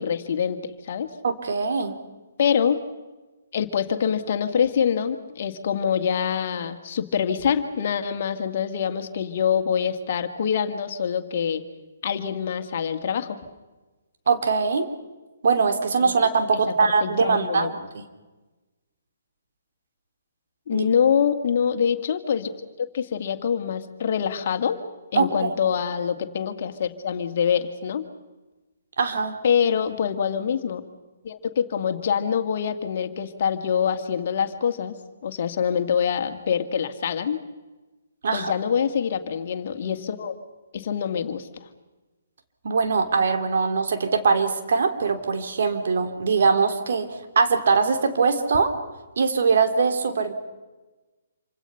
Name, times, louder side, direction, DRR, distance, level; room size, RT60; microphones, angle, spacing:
voice 1, 0.0-1.1 2.4-2.8 3.5-11.6 12.0-13.4 16.0-16.2 16.5-17.7 20.7-22.5 22.8-24.8 25.1-28.0 29.4-30.8 31.2-35.0 35.2-37.4 38.3-40.3 40.7-41.5, left 7 dB, 50° left, 8 dB, 2.1 m, -25 dB
voice 2, 1.2-2.0 14.3-14.9 15.4-18.0 20.7-20.9 25.1-25.5 29.0-29.4 38.2-38.5 42.6-48.7 49.2-50.3, right 4 dB, 60° right, 6 dB, 2.9 m, -22 dB
27.5 x 25.5 x 5.8 m, 1.2 s
figure-of-eight pair, 130°, 0 cm